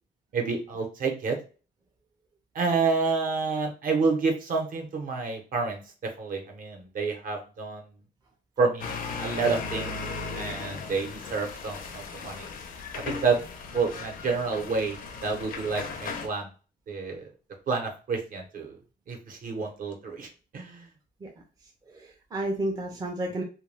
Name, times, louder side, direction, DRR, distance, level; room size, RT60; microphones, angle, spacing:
voice 1, 0.3-1.4 2.5-5.8 6.2-7.9 8.6-10.0 10.3-12.5 13.0-13.4 13.7-16.5 16.9-17.2 17.7-18.7 19.1-20.3 20.5-20.9, right 4 dB, 55° right, 3 dB, 0.8 m, -29 dB
sound 1, 8.8-16.3, left 4 dB, 55° left, 0.5 m, -37 dB
voice 2, 21.9-23.4, right 1 dB, 20° right, 0 dB, 0.5 m, -32 dB
2.2 x 2.2 x 3.2 m, 0.35 s
cardioid pair, 140°, 17 cm